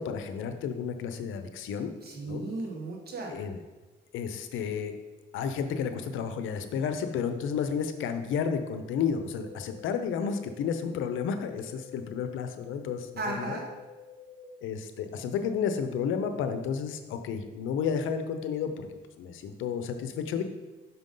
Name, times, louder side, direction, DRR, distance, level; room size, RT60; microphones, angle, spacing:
voice 1, 0.0-1.9 2.3-2.4 3.3-3.6 4.1-4.9 5.3-13.6 14.6-18.9 19.2-20.4, left 6 dB, 85° left, 8 dB, 0.6 m, -32 dB
voice 2, 2.0-3.4 13.2-13.6, right 2 dB, 50° right, -1 dB, 1.7 m, -35 dB
sound 1, 9.4-14.4, left 7 dB, 25° right, 1.2 m, -50 dB
5.8 x 5.2 x 3.8 m, 1.2 s
cardioid pair, 90°, 20 cm